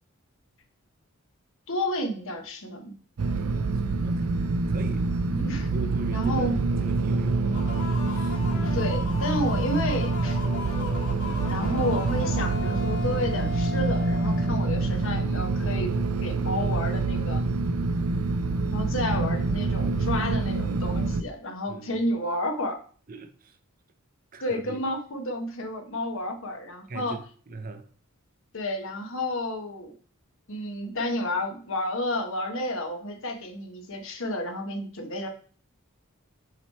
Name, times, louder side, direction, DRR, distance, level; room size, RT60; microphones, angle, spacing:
voice 1, 1.7-2.9 5.3-5.7 6.1-6.6 8.6-10.4 11.0-15.9 16.2-17.4 18.7-22.8 24.4-27.2 28.5-29.9 30.5-35.3, left 1 dB, 65° left, 1.2 m, -31 dB
sound 1, 3.2-21.2, right 3 dB, 80° right, 0.5 m, -26 dB
voice 2, 5.7-6.5 6.8-7.9 8.2-8.3 21.7-21.9 23.1-23.3 24.3-24.8 26.9-27.2 27.5-27.8, right 3 dB, 40° right, 0.6 m, -40 dB
sound 2, 7.5-15.1, left 4 dB, 90° left, 2.0 m, -38 dB
sound 3, 7.8-14.8, left 3 dB, 25° left, 1.7 m, -46 dB
7.3 x 3.2 x 4.2 m
head